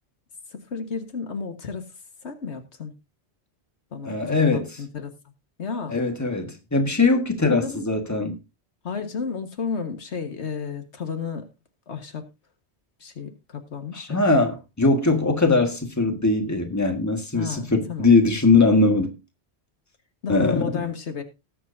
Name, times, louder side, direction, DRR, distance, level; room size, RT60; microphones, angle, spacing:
voice 1, 0.5-1.9 2.2-2.9 3.9-5.1 5.6-6.0 7.4-7.9 8.8-11.5 11.9-12.3 13.0-14.2 17.3-18.1 20.2-21.2, left 5 dB, 90° left, 1.8 m, -32 dB
voice 2, 4.0-4.7 5.9-8.4 13.9-19.1 20.3-20.8, left 3 dB, 15° left, 1.6 m, -21 dB
19.0 x 7.6 x 2.7 m
omnidirectional pair, 1.1 m